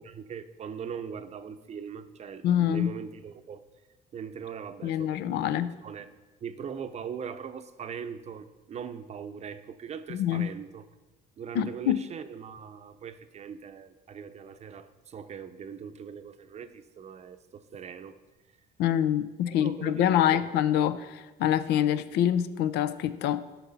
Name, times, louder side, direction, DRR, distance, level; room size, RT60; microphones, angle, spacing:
voice 1, 0.0-3.6 4.1-6.1 6.4-10.8 11.4-18.1 19.5-20.5, right 7 dB, 40° right, 11 dB, 0.6 m, -40 dB
voice 2, 2.4-2.9 4.8-5.7 10.1-10.5 11.5-12.0 18.8-23.4, left 10 dB, 85° left, 13 dB, 0.5 m, -26 dB
11.5 x 6.0 x 4.0 m, 1.2 s
cardioid pair, 110°, 17 cm